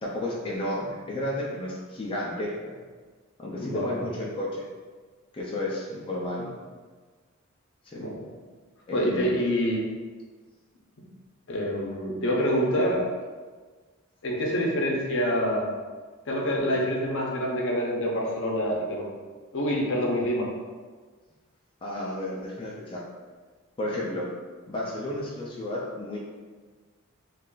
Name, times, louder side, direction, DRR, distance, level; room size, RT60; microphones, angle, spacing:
voice 1, 0.0-2.7 3.4-4.6 5.3-6.5 7.9-8.0 8.9-9.3 21.8-23.0 23.8-24.3 24.7-26.2, left 1 dB, 25° left, -5 dB, 0.5 m, -32 dB
voice 2, 3.6-4.0 7.9-8.2 8.9-9.8 11.5-13.1 14.2-15.7 16.3-19.0 19.5-20.5, equal, 60° left, -2 dB, 0.7 m, -26 dB
3.2 x 2.5 x 3.7 m, 1.4 s
head